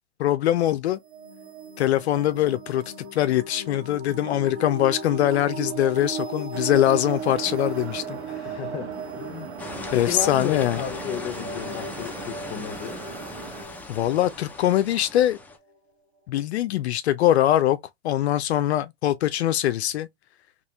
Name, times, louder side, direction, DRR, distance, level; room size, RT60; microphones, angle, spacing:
voice 1, 0.2-1.0 1.8-2.8 3.1-8.5 9.9-10.8 13.9-15.4 16.3-17.8 18.0-20.1, left 12 dB, 75° left, 0.5 m, -22 dB
sound 1, 0.9-15.6, right 4 dB, 40° right, 1.7 m, -37 dB
sound 2, 6.5-13.6, right 6 dB, 80° right, 1.4 m, -40 dB
voice 2, 8.5-13.0, left 9 dB, 30° left, 0.8 m, -34 dB
sound 3, 9.6-15.6, left 2 dB, 5° left, 0.4 m, -39 dB
4.0 x 3.0 x 2.3 m
hypercardioid pair, 115°, 33 cm